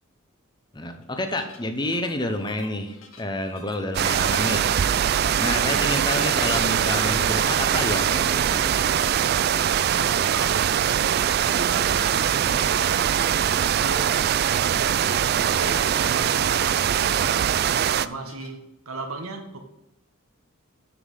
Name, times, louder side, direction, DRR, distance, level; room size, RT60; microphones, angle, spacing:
voice 1, 0.7-4.6 5.4-8.8, left 1 dB, 20° left, 7 dB, 0.8 m, -29 dB
sound 1, 1.0-18.5, left 4 dB, 85° left, 1.6 m, -48 dB
sound 2, 3.9-18.1, right 9 dB, 50° right, 0.3 m, -22 dB
sound 3, 6.5-16.3, equal, 45° left, 1.4 m, -45 dB
voice 2, 9.9-19.6, right 3 dB, 90° right, 5 dB, 1.4 m, -38 dB
7.1 x 6.9 x 5.6 m, 0.91 s
head